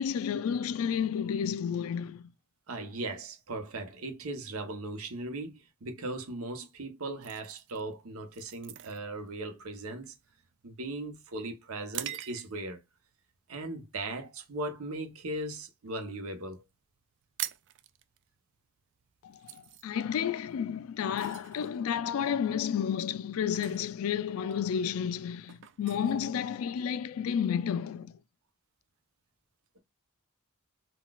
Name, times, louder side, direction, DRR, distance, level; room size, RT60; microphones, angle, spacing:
voice 1, 0.0-2.3 19.2-28.2, left 8 dB, 70° left, 0.3 m, -31 dB
voice 2, 2.7-10.1 10.6-12.8 13.5-16.6, right 2 dB, 85° right, 0.8 m, -38 dB
sound 1, 7.2-12.8 13.3-13.6 14.1-14.4 14.8-15.9 16.2-16.3 16.5-16.7 17.0-27.0, right 13 dB, 60° right, 0.3 m, -45 dB
3.9 x 2.3 x 2.3 m
head